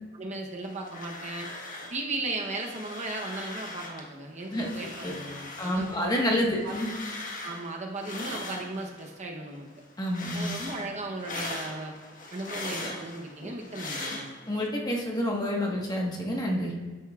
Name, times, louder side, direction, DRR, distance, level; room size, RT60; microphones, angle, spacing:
voice 1, 0.1-1.5 1.9-5.9 6.4-6.7 7.4-9.7 10.3-11.9 12.3-14.3, right 2 dB, 35° right, 0 dB, 0.9 m, -36 dB
sound 1, 0.6-2.0 2.3-4.1 4.4-9.1 9.5-14.7, left 2 dB, 45° left, 1.4 m, -40 dB
voice 2, 4.5-5.1 5.6-6.9 10.0-10.5 14.5-16.7, equal, 20° left, -2 dB, 1.4 m, -28 dB
12.5 x 9.0 x 2.5 m, 1.4 s
head